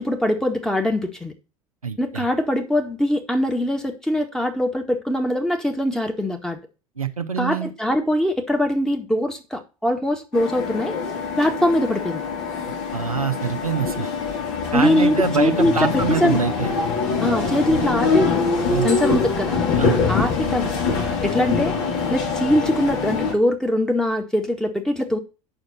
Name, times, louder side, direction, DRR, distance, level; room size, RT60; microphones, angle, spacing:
voice 1, 0.0-1.3 2.0-6.6 7.4-11.0 11.4-12.2 14.7-16.5 17.2-18.5 18.8-19.6 20.1-20.8 21.2-21.7 22.1-25.2, left 1 dB, 5° left, 1.9 m, -22 dB
voice 2, 1.8-2.3 7.0-7.7 12.9-14.1 14.7-16.8 18.7-18.9 19.7-20.0, right 5 dB, 90° right, 1.0 m, -24 dB
sound 1, 10.3-23.3, left 5 dB, 55° left, 3.6 m, -24 dB
8.9 x 6.5 x 4.2 m
figure-of-eight pair, 75°, 18 cm